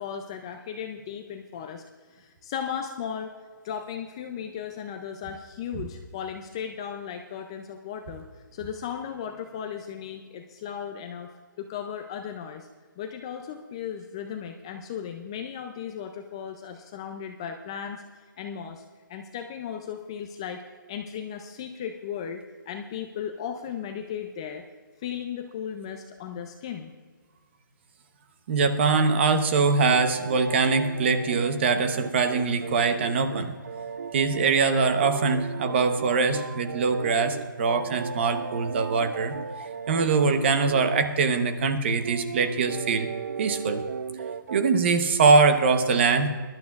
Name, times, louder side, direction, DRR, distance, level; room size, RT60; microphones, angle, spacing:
voice 1, 0.0-1.8 2.1-3.3 3.6-8.2 8.5-11.3 11.6-12.7 13.0-18.8 19.1-20.6 20.9-24.6 25.0-26.9, left 8 dB, 15° left, 5 dB, 0.3 m, -36 dB
voice 2, 28.5-33.5 34.1-39.4 39.9-43.1 43.4-43.8 44.5-46.3, right 4 dB, 30° right, 9 dB, 0.8 m, -23 dB
sound 1, 29.9-41.2 41.8-44.7, right 6 dB, 50° right, 0.4 m, -36 dB
21.5 x 11.5 x 2.4 m, 1.5 s
hypercardioid pair, 165°, 11 cm